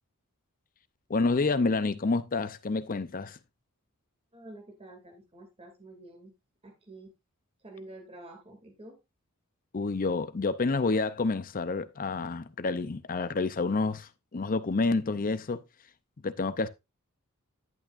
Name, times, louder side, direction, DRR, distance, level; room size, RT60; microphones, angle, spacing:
voice 1, 1.1-3.4 9.7-15.6 16.2-16.7, left 3 dB, 40° left, 0.6 m, -28 dB
voice 2, 4.3-6.3 6.6-7.1 7.6-9.0, right 2 dB, 25° right, 2.6 m, -48 dB
11.0 x 8.6 x 2.5 m
head